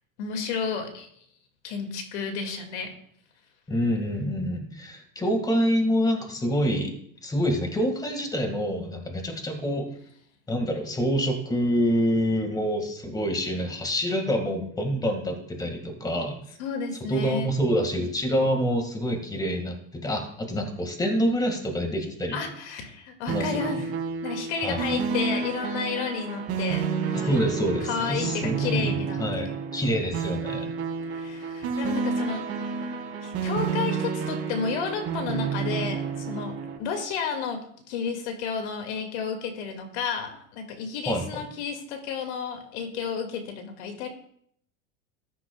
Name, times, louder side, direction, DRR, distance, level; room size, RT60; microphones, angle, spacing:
voice 1, 0.2-1.1 1.6-2.9 16.6-17.6 22.3-24.0 24.2-27.4 27.8-29.5 31.1-44.1, left 6 dB, 70° left, 5 dB, 2.2 m, -32 dB
voice 2, 3.7-6.9 7.2-9.9 10.5-16.4 17.1-22.5 23.3-23.8 24.6-24.8 27.3-30.7 41.1-41.5, equal, 10° left, 4 dB, 1.9 m, -26 dB
sound 1, 23.3-36.8, right 6 dB, 40° right, 3.6 m, -30 dB
13.5 x 10.0 x 2.3 m, 0.67 s
supercardioid pair, 115°, 36 cm